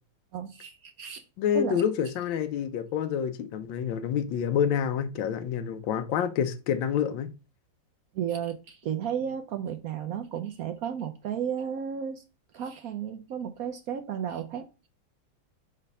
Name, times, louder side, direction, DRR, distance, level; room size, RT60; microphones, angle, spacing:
voice 1, 0.3-1.2 1.5-1.8 8.1-12.2 12.5-14.9, right 8 dB, 75° right, 0.8 m, -33 dB
voice 2, 1.4-7.3, left 8 dB, 75° left, 1.4 m, -28 dB
5.2 x 4.2 x 5.4 m
omnidirectional pair, 2.1 m